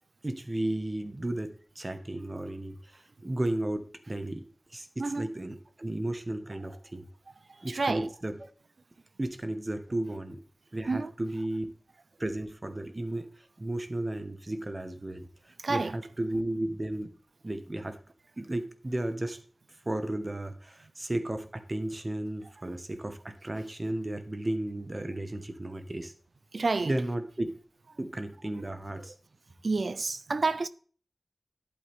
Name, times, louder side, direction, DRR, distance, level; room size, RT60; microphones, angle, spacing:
voice 1, 0.2-4.4 4.7-7.1 7.6-8.3 9.2-10.4 10.7-11.7 12.2-17.1 17.4-18.0 18.4-19.4 19.8-26.1 26.8-27.5 28.0-29.1, right 1 dB, 40° right, 1.4 m, -34 dB
voice 2, 5.0-5.3 7.6-8.1 10.9-11.1 15.6-16.0 26.5-26.9 29.6-30.7, right 3 dB, 85° right, 0.5 m, -29 dB
11.0 x 8.6 x 3.6 m
wide cardioid pair, 70°, 0 cm